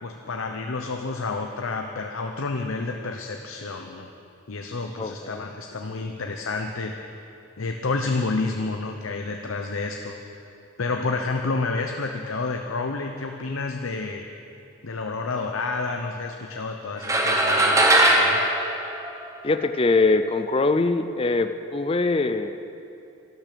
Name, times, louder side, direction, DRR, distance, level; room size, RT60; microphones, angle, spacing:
voice 1, 0.0-4.1 4.5-7.0 7.6-10.2 10.8-14.3 14.8-18.4, left 3 dB, 80° left, 4 dB, 0.8 m, -29 dB
voice 2, 5.0-5.5 19.4-22.6, left 3 dB, 25° left, 9 dB, 0.4 m, -23 dB
sound 1, 17.0-19.6, right 1 dB, 15° right, 1.1 m, -20 dB
13.5 x 12.0 x 6.8 m, 2.7 s
head